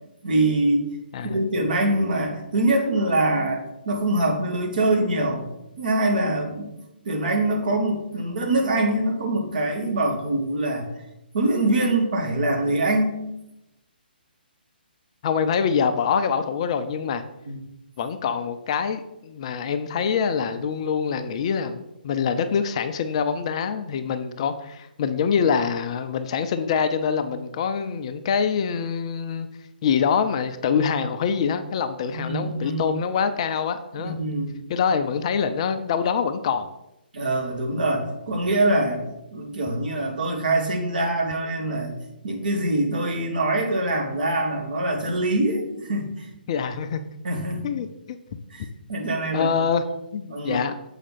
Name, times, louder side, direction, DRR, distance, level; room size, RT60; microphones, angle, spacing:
voice 1, 0.2-0.9 1.2-5.4 5.8-6.7 7.0-10.9 11.3-13.1 17.5-17.6 32.1-32.9 34.0-34.6 37.1-39.0 39.3-41.9 42.2-46.3 47.2-47.7 48.5-49.5 50.3-50.6, right 2 dB, 55° right, 2 dB, 1.6 m, -24 dB
voice 2, 15.2-17.2 18.0-29.5 29.8-34.2 34.7-36.7 46.5-47.0 47.6-48.2 49.3-49.8 50.1-50.7, left 6 dB, 35° left, 9 dB, 0.5 m, -25 dB
7.4 x 5.0 x 4.1 m, 0.89 s
figure-of-eight pair, 135°, 5 cm